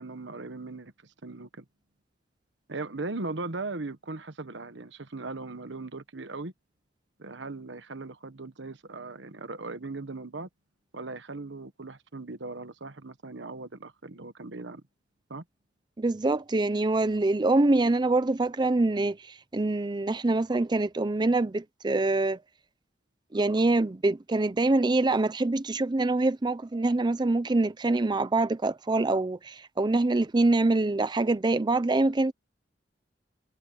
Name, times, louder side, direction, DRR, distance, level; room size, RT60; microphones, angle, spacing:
voice 1, 0.0-1.6 2.7-6.5 7.2-10.5 10.9-14.8 15.3-15.4, right 3 dB, 85° right, 1.3 m, -38 dB
voice 2, 16.0-19.2 19.5-22.4 23.3-32.3, right 2 dB, 25° right, 0.5 m, -25 dB
head